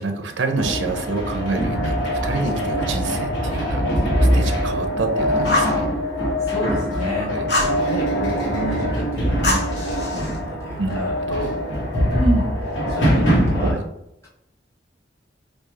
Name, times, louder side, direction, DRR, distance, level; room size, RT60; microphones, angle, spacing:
voice 1, 0.0-5.9 7.2-7.5 10.8-11.6 13.6-13.8, right 3 dB, 85° right, 5 dB, 0.6 m, -28 dB
sound 1, 0.6-13.7, equal, 85° left, 1.1 m, -22 dB
Fire, 5.4-5.8 7.5-7.8 9.4-10.4, left 1 dB, 60° left, 1.3 m, -23 dB
voice 2, 6.4-7.3 7.8-11.2 12.1-13.8 14.2-14.3, right 1 dB, 15° left, -5 dB, 1.2 m, -29 dB
4.6 x 2.3 x 2.9 m, 0.83 s
head